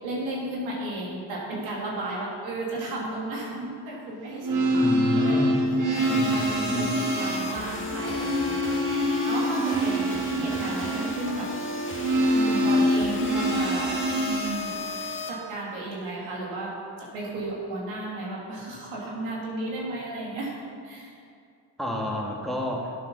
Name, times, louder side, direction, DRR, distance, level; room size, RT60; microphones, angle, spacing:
voice 1, 0.0-5.4 5.9-8.8 9.0-11.5 11.8-12.0 12.3-13.9 14.2-14.7 15.3-16.7 17.0-20.5 20.8-21.2, right 2 dB, 80° right, -4 dB, 3.0 m, -34 dB
sound 1, 4.3-14.6, equal, 40° right, 1.9 m, -25 dB
voice 2, 4.7-5.6 6.1-6.9 21.8-22.9, equal, ahead, -2 dB, 2.0 m, -30 dB
sound 2, 5.9-15.3, left 2 dB, 25° left, 1.8 m, -35 dB
11.5 x 7.5 x 5.6 m, 2.4 s
supercardioid pair, 65°, 46 cm